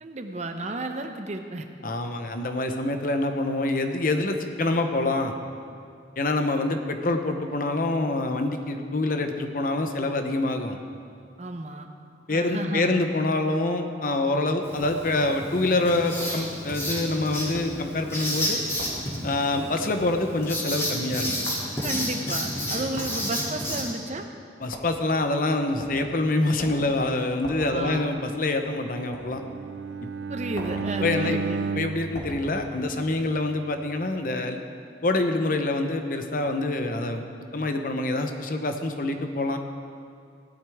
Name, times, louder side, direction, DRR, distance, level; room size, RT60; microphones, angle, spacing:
voice 1, 0.0-1.7 11.4-11.9 12.3-13.0 21.8-24.3 27.5-28.2 30.3-31.6, right 2 dB, 40° right, 5 dB, 0.8 m, -33 dB
voice 2, 1.8-5.3 6.2-10.8 12.3-18.6 19.2-21.3 24.6-29.4 31.0-31.4 31.8-34.6 35.0-37.3 37.5-39.6, left 2 dB, 50° left, 6 dB, 0.8 m, -26 dB
Writing, 14.6-23.8, equal, 15° left, 2.6 m, -31 dB
sound 1, 14.8-15.0 16.2-16.4 17.5-17.7 18.8-19.0 20.0-20.2 21.5-21.7 23.0-23.2 24.7-25.0 25.8-26.1 26.6-26.9 27.4-27.7 29.1-29.3 30.5-30.9 32.1-32.4, left 1 dB, 90° left, 2.2 m, -40 dB
Bowed string instrument, 29.2-33.4, right 4 dB, 85° right, 0.4 m, -33 dB
17.0 x 11.5 x 3.5 m, 2.4 s
head